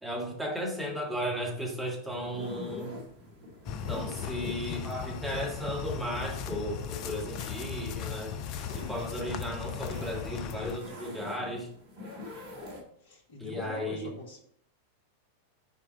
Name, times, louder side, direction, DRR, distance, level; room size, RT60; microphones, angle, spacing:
voice 1, 0.0-2.9 3.9-8.4 8.7-11.7 13.4-14.1, equal, 5° right, 1.7 m, -35 dB
sound 1, 2.0-12.8, left 2 dB, 45° right, 1.7 m, -46 dB
sound 2, 3.6-10.8, left 8 dB, 40° left, 0.5 m, -37 dB
voice 2, 13.0-14.4, left 3 dB, 55° left, 1.3 m, -42 dB
5.8 x 4.6 x 4.1 m
figure-of-eight pair, 90°, 0 cm